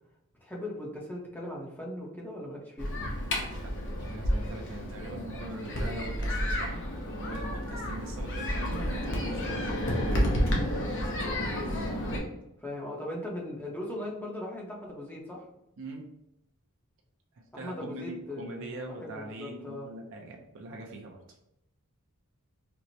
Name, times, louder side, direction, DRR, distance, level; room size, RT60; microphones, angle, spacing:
voice 1, 0.4-3.0 12.6-15.4 17.5-19.9, left 1 dB, 10° left, -3 dB, 0.7 m, -39 dB
sound 1, 2.8-12.2, equal, 60° left, 0.7 m, -31 dB
voice 2, 4.0-6.8 7.2-9.7 15.8-16.0 17.3-21.2, right 1 dB, 60° right, 1 dB, 0.5 m, -42 dB
4.4 x 2.0 x 2.7 m, 0.84 s
head